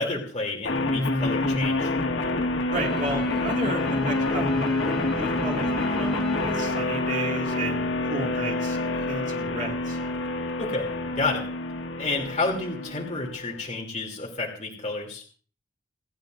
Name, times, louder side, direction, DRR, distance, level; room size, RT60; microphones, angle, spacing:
voice 1, 0.0-1.9 10.6-11.4 12.0-15.2, left 3 dB, 35° left, -1 dB, 2.6 m, -30 dB
sound 1, 0.6-13.6, left 2 dB, 85° left, 1.4 m, -27 dB
sound 2, 2.7-7.6, left 1 dB, 5° left, 1.1 m, -34 dB
voice 2, 2.7-10.0, right 2 dB, 40° right, 0 dB, 2.1 m, -34 dB
29.5 x 10.0 x 2.5 m, 0.40 s
head